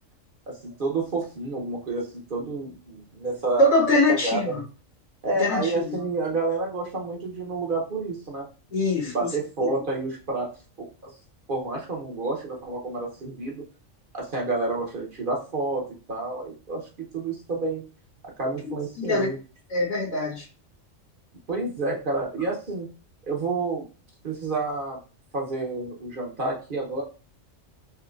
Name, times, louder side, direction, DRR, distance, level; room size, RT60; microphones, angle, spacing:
voice 1, 0.5-3.7 4.1-4.5 5.2-8.5 9.0-10.5 10.8-11.1 11.5-13.6 14.1-16.8 17.1-17.8 18.4-19.4 21.5-22.9 23.2-23.8 24.2-25.0 25.3-27.0, right 3 dB, 45° right, -1 dB, 1.0 m, -29 dB
voice 2, 3.6-4.6 5.4-6.0 8.7-9.1 9.6-9.7 19.0-19.3 19.7-20.4, left 1 dB, 90° left, -7 dB, 1.7 m, -23 dB
4.4 x 2.8 x 2.5 m, 0.35 s
omnidirectional pair, 1.3 m